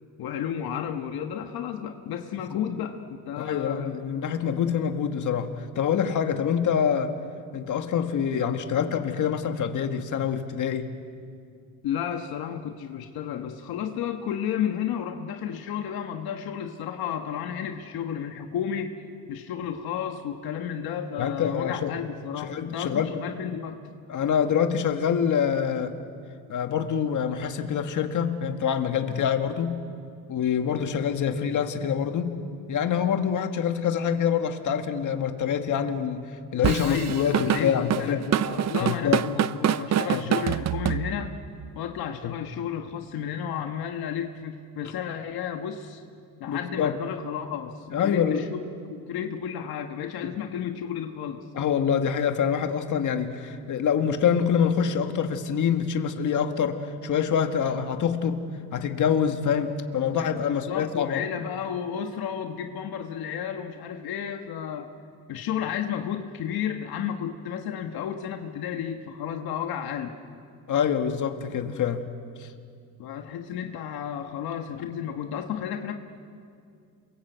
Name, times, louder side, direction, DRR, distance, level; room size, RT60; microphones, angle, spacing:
voice 1, 0.2-4.0 11.8-18.9 19.3-23.8 36.8-41.4 41.7-46.0 46.4-48.6 49.0-51.4 60.5-64.9 65.3-70.1 73.0-75.9, left 8 dB, 80° left, 4 dB, 1.5 m, -32 dB
voice 2, 3.4-7.1 7.5-10.9 21.2-21.9 22.4-23.1 24.1-26.0 26.5-29.8 30.3-32.4 32.7-38.2 38.8-39.3 40.0-40.3 42.2-42.3 46.5-47.0 47.9-48.5 50.2-50.4 51.5-61.2 70.7-72.1 72.4-72.5, left 7 dB, 55° left, 6 dB, 1.8 m, -26 dB
Drum kit / Drum, 36.6-41.5, right 10 dB, 45° right, 0.7 m, -25 dB
28.0 x 22.5 x 8.1 m, 2.3 s
cardioid pair, 125°, 37 cm